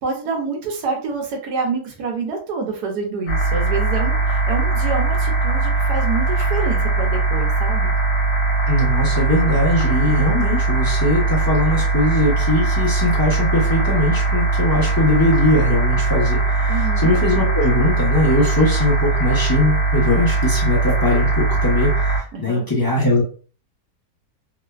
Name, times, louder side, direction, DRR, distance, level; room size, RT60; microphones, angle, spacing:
voice 1, 0.0-7.9 16.7-17.1 22.3-22.7, right 4 dB, 75° right, 1 dB, 1.2 m, -27 dB
sound 1, 3.3-22.2, right 3 dB, 70° left, 1.3 m, -20 dB
voice 2, 8.7-23.2, left 1 dB, 20° left, -6 dB, 0.5 m, -20 dB
3.1 x 2.1 x 2.3 m, 0.39 s
omnidirectional pair, 1.8 m